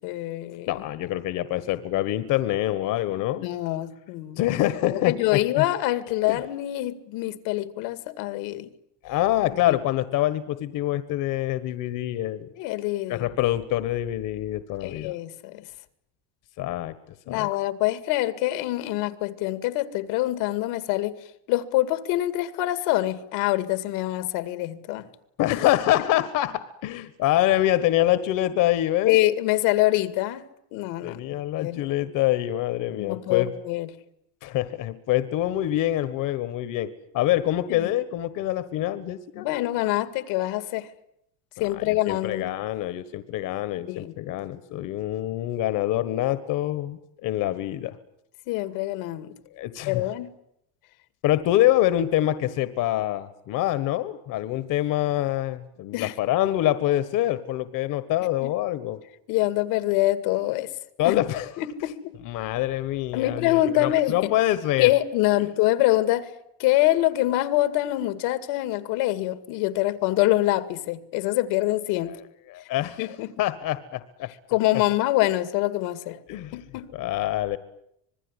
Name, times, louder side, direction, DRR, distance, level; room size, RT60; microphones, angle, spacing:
voice 1, 0.0-0.8 3.4-4.5 4.9-8.7 9.5-9.8 12.6-13.3 14.8-15.6 17.3-21.2 21.5-25.0 29.0-30.4 30.7-31.2 31.6-31.8 32.9-33.9 37.7-37.9 39.4-40.9 41.6-42.5 43.9-44.2 48.5-49.3 49.9-50.3 55.9-56.1 58.4-58.5 59.3-60.7 61.0-61.2 61.6-62.1 63.1-64.3 64.8-66.3 66.6-72.1 73.0-73.3 74.5-76.2 76.5-76.9, left 16 dB, 80° left, 2.2 m, -25 dB
voice 2, 0.7-3.5 4.4-5.7 6.2-6.4 9.0-12.5 13.1-15.1 16.6-16.9 17.3-17.5 25.4-29.2 31.0-33.5 34.4-36.9 37.1-39.5 41.6-48.0 49.6-50.0 51.2-59.0 61.0-61.5 62.2-64.9 65.3-65.4 72.1-72.2 72.5-73.0 73.4-74.3 76.3-76.6 76.9-77.6, left 14 dB, 60° left, 1.5 m, -25 dB
26.0 x 20.5 x 9.8 m
cardioid pair, 145°, 36 cm